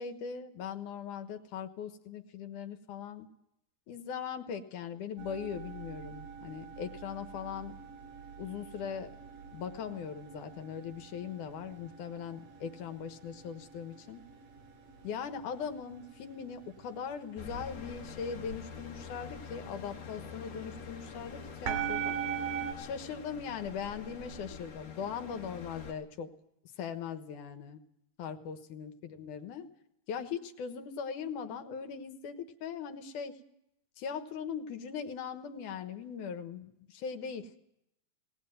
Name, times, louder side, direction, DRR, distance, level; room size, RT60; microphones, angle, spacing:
voice 1, 0.0-3.3 3.9-7.8 8.4-9.1 9.5-14.2 15.0-22.2 22.8-26.3 26.8-27.8 28.2-29.7 30.1-33.4 34.0-37.5, left 7 dB, 90° left, 8 dB, 2.9 m, -40 dB
sound 1, 5.2-22.7, right 8 dB, 85° right, 4.2 m, -43 dB
sound 2, 17.4-25.9, left 6 dB, 55° left, 3.2 m, -46 dB
18.5 x 18.5 x 9.3 m, 0.79 s
omnidirectional pair, 3.5 m